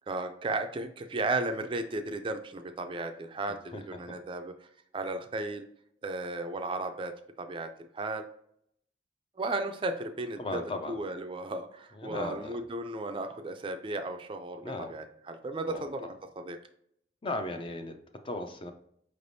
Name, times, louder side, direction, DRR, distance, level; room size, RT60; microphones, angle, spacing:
voice 1, 0.1-4.5 4.9-5.6 6.0-7.1 7.4-7.7 7.9-8.2 9.4-10.6 10.9-14.6 14.9-16.6, right 2 dB, 30° right, 6 dB, 0.4 m, -34 dB
voice 2, 3.7-4.2 10.4-11.0 11.9-12.6 14.6-14.9 15.7-16.1 17.2-18.7, left 2 dB, 30° left, 6 dB, 0.5 m, -37 dB
5.0 x 3.3 x 2.6 m, 0.67 s
head